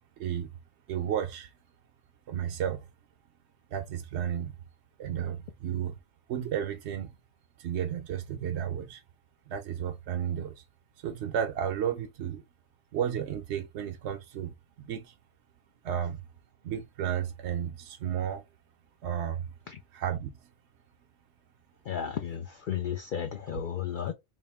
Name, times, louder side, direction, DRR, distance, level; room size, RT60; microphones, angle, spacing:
voice 1, 0.2-0.5 0.9-1.5 2.3-2.9 3.7-4.5 5.0-6.0 6.3-7.2 7.6-9.0 9.5-10.6 11.0-12.4 12.9-15.1 15.8-16.2 16.6-18.4 19.0-19.5 19.9-20.3, right 9 dB, 65° right, 0.8 m, -33 dB
voice 2, 21.8-24.1, left 9 dB, 55° left, 0.6 m, -33 dB
3.5 x 2.6 x 3.4 m
omnidirectional pair, 1.3 m